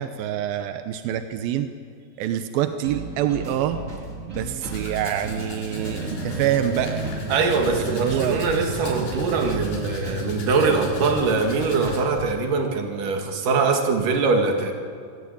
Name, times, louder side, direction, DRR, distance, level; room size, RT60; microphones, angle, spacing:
voice 1, 0.0-1.7 2.2-3.8 4.3-7.0 7.8-8.4, right 10 dB, 80° right, 8 dB, 2.1 m, -26 dB
sound 1, 2.8-12.4, right 2 dB, 20° right, 2.3 m, -36 dB
Domestic sounds home sounds, 4.7-12.0, left 3 dB, 60° left, 6.0 m, -41 dB
sound 2, 5.7-11.2, right 2 dB, 40° right, 4.4 m, -32 dB
voice 2, 7.3-14.7, right 4 dB, 55° right, 4 dB, 3.2 m, -22 dB
26.5 x 18.0 x 8.7 m, 2.4 s
omnidirectional pair, 5.3 m